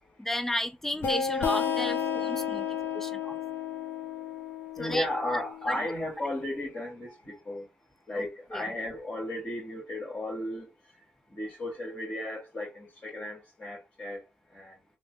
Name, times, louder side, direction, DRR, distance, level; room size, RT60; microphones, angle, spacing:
voice 1, 0.2-2.7 2.9-3.4 4.8-5.0 5.7-5.8 8.5-8.6, left 1 dB, 10° left, 0.5 m, -33 dB
sound 1, 1.0-6.4, left 7 dB, 70° left, 0.7 m, -32 dB
voice 2, 4.8-7.7 8.1-10.7 11.3-14.2 14.5-14.8, left 1 dB, 35° left, 1.7 m, -35 dB
3.1 x 2.1 x 3.2 m
cardioid pair, 65°, 4 cm